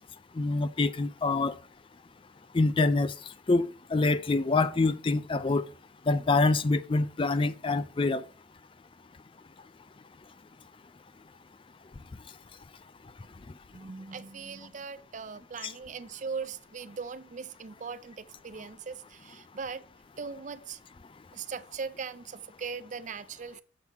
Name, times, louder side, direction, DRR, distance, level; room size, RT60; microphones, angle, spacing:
voice 1, 0.4-1.5 2.5-3.1 3.5-5.6 6.1-8.2 15.6-15.7, left 3 dB, 25° left, 0.4 m, -26 dB
voice 2, 13.7-19.8 20.2-20.8 21.3-23.6, right 5 dB, 40° right, 0.4 m, -39 dB
7.3 x 6.1 x 5.7 m
head